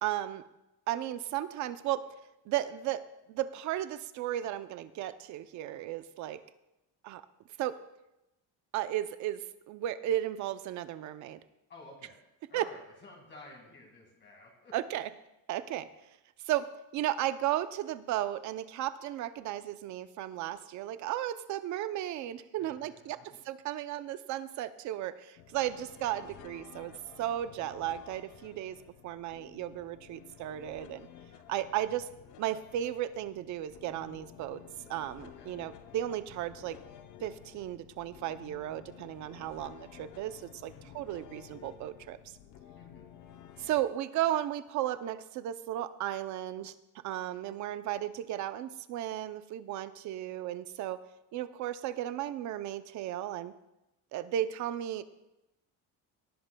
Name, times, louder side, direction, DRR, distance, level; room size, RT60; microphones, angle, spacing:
voice 1, 0.0-0.4 0.9-2.0 2.5-3.0 3.3-6.4 7.0-7.2 7.6-7.8 8.7-9.4 9.7-11.4 12.5-12.6 14.7-15.1 15.5-15.9 16.5-16.6 16.9-23.2 23.5-28.8 29.0-31.1 31.5-32.1 32.4-34.6 34.9-36.8 37.2-42.3 43.6-46.7 47.0-51.0 51.3-53.5 54.1-55.0, right 12 dB, 50° right, 13 dB, 0.6 m, -34 dB
voice 2, 11.7-12.2 12.5-14.7 22.6-23.4 27.6-27.7 35.4-35.5 40.7-41.0 42.8-43.1, left 2 dB, 30° left, 0 dB, 2.1 m, -53 dB
sound 1, 25.4-43.8, left 10 dB, 55° left, 0.7 m, -53 dB
18.0 x 11.0 x 2.3 m, 0.92 s
cardioid pair, 170°, 37 cm